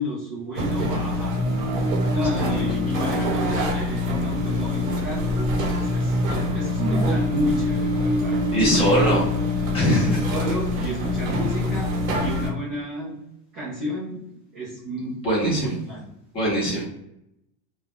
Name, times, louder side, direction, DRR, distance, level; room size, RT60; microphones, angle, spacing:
voice 1, 0.0-1.4 2.1-8.3 8.7-9.2 10.3-11.9 12.2-13.2 13.5-14.2 14.5-16.0 16.7-16.8, equal, 20° right, -8 dB, 0.3 m, -31 dB
sound 1, 0.5-12.5, left 1 dB, 90° right, 0.9 m, -24 dB
voice 2, 2.4-2.9 8.5-9.2 9.7-10.3 15.2-15.7 16.3-16.8, equal, 15° left, -6 dB, 0.8 m, -22 dB
2.3 x 2.1 x 2.9 m, 0.80 s
supercardioid pair, 170°, 41 cm